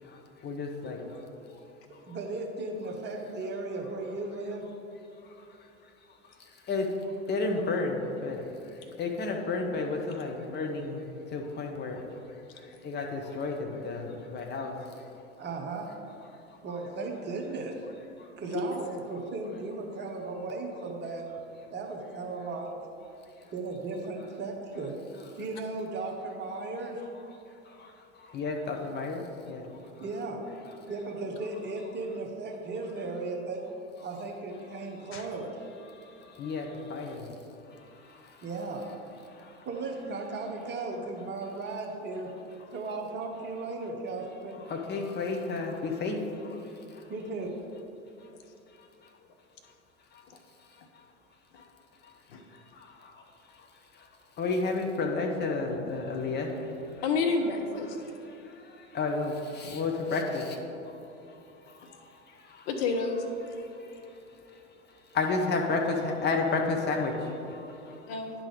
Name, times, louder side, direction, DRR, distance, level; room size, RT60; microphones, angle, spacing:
voice 1, 0.0-1.2 1.5-1.6 2.1-2.2 5.2-5.6 6.2-12.0 12.5-14.8 18.2-18.3 27.6-29.7 35.9-37.3 37.7-38.5 39.3-39.6 42.6-42.7 44.6-47.0 49.0-49.1 50.1-50.2 50.7-51.0 51.6-51.7 52.0-52.1 52.5-53.2 53.5-53.7 53.9-54.1 54.4-56.9 58.3-60.6 60.8-61.0 61.7-62.7 63.7-64.1 64.5-64.6 65.1-68.0, left 3 dB, 30° left, 2 dB, 1.0 m, -33 dB
voice 2, 2.1-4.6 15.4-15.9 16.6-17.8 18.4-21.3 21.7-22.7 23.5-25.0 25.4-27.0 30.0-30.4 30.9-33.6 34.0-35.6 38.4-38.8 39.7-42.3 42.7-44.6 47.1-47.5, right 3 dB, 30° right, 1 dB, 1.0 m, -36 dB
voice 3, 57.0-58.0 62.7-63.2 68.1-68.3, left 4 dB, 55° left, 4 dB, 0.9 m, -29 dB
10.5 x 3.8 x 5.0 m, 2.8 s
figure-of-eight pair, 75°, 37 cm